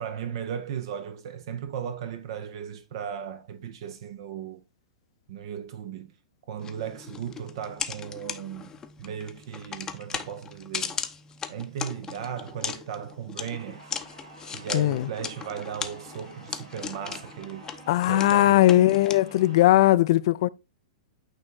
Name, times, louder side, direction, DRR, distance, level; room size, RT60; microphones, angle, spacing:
voice 1, 0.0-4.6 5.3-6.1 6.5-11.0 11.5-13.9 14.5-17.7 18.1-18.9, right 8 dB, 50° right, 0.6 m, -36 dB
sound 1, 6.6-19.7, left 6 dB, 20° left, 0.7 m, -38 dB
sound 2, 13.5-19.7, right 2 dB, 70° right, 2.5 m, -49 dB
voice 2, 14.7-15.1 17.9-20.5, left 15 dB, 50° left, 0.3 m, -19 dB
9.0 x 3.2 x 3.8 m
figure-of-eight pair, 100°, 3 cm